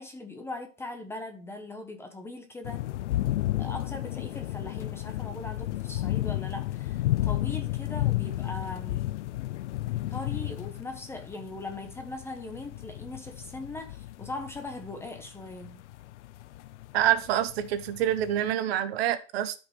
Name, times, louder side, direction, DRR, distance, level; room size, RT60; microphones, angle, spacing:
voice 1, 0.0-2.9 3.6-9.2 10.1-15.8, left 2 dB, 5° left, 0.8 m, -40 dB
sound 1, 2.6-18.5, left 15 dB, 65° left, 0.6 m, -33 dB
voice 2, 16.9-19.5, right 11 dB, 50° right, 1.0 m, -26 dB
12.5 x 5.3 x 3.2 m
hypercardioid pair, 145°, 39 cm